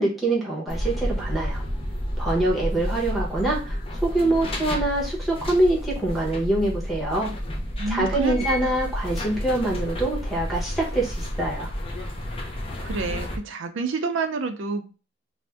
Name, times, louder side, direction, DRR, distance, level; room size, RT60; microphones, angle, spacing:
voice 1, 0.0-1.6 2.2-3.8 4.0-7.3 7.9-11.7, right 2 dB, ahead, -5 dB, 0.9 m, -24 dB
sound 1, 0.7-13.4, equal, 30° left, 0.4 m, -30 dB
voice 2, 7.8-8.7 12.8-14.9, right 4 dB, 65° right, 6 dB, 0.4 m, -29 dB
2.5 x 2.0 x 3.3 m, 0.34 s
head